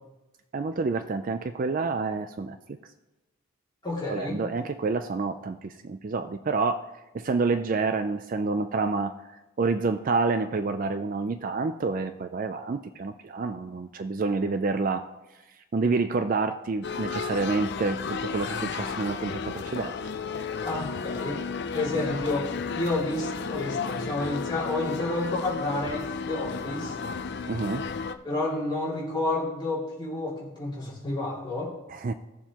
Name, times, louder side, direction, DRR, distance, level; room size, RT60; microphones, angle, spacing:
voice 1, 0.5-2.8 4.1-6.8 7.1-15.1 15.7-19.9 27.5-27.9 31.9-32.1, right 4 dB, 40° right, 9 dB, 0.4 m, -28 dB
voice 2, 3.8-4.4 20.6-21.4 21.7-27.0 28.2-31.7, left 2 dB, 20° left, -5 dB, 2.5 m, -30 dB
sound 1, 16.8-28.1, left 5 dB, 50° left, 0.5 m, -33 dB
17.0 x 7.1 x 2.9 m, 1.0 s
head